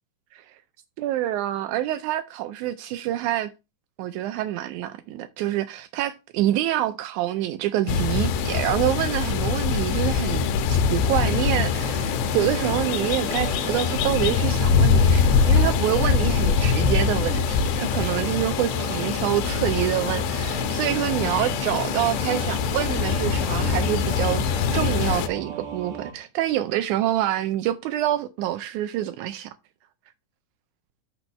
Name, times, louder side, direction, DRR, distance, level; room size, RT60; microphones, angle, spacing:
voice 1, 1.0-3.5 4.0-29.5, right 13 dB, 85° right, 1.7 m, -26 dB
sound 1, 7.9-25.3, left 6 dB, 90° left, 2.5 m, -23 dB
Singing / Musical instrument, 11.1-26.1, right 5 dB, 65° right, 3.0 m, -36 dB
8.8 x 4.3 x 5.3 m
omnidirectional pair, 4.0 m